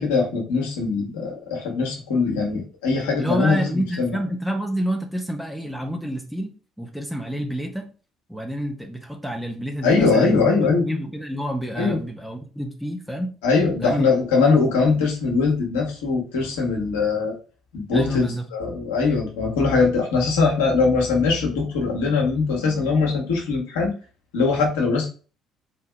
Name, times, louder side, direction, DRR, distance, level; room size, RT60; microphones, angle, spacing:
voice 1, 0.0-4.2 9.8-11.0 11.8-12.0 13.4-17.3 17.7-18.3 18.5-23.9 24.3-25.1, left 4 dB, 70° left, -2 dB, 1.6 m, -21 dB
voice 2, 3.2-6.5 6.8-7.9 8.3-13.3 13.8-14.5 17.9-18.4, equal, ahead, 3 dB, 1.1 m, -29 dB
4.4 x 3.5 x 3.4 m, 0.36 s
figure-of-eight pair, 50°, 0 cm